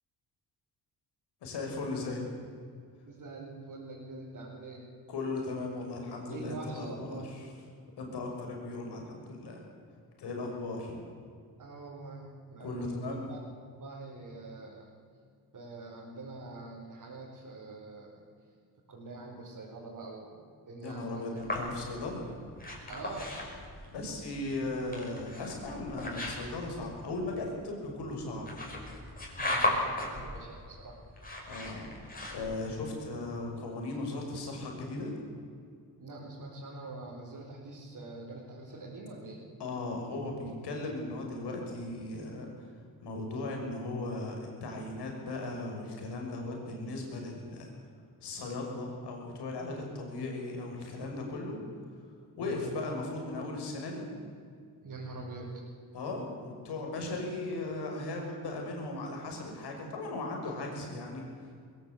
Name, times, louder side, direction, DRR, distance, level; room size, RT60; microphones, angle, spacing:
voice 1, 1.4-2.2 5.1-7.5 8.0-9.6 10.2-11.0 12.6-13.3 20.8-22.2 23.9-28.7 31.5-31.9 32.3-35.1 39.6-42.7 43.0-47.7 48.2-51.6 52.4-54.0 55.9-61.5, left 2 dB, 85° left, 1 dB, 6.1 m, -37 dB
voice 2, 3.1-4.8 6.3-7.3 11.6-14.9 15.5-18.2 18.9-20.3 20.7-21.4 22.9-23.3 29.4-31.0 36.0-39.4 52.4-52.6 54.8-55.5, right 2 dB, 55° right, -4 dB, 5.0 m, -44 dB
sound 1, 21.4-32.8, left 1 dB, 20° left, 5.7 m, -37 dB
21.5 x 17.5 x 8.3 m, 2.3 s
cardioid pair, 105°, 40 cm